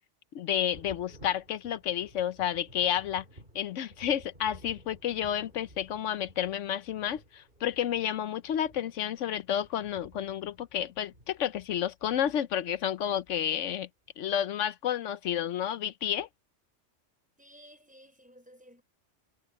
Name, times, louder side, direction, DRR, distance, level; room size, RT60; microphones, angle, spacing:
voice 1, 0.3-3.2 3.5-13.9 14.2-16.3, left 10 dB, 80° left, 1.0 m, -31 dB
Thunder, 0.7-12.1 13.4-13.5 14.1-14.2, right 1 dB, 45° right, 6.3 m, -55 dB
voice 2, 17.4-18.8, equal, 5° right, 4.6 m, -55 dB
omnidirectional pair, 1.2 m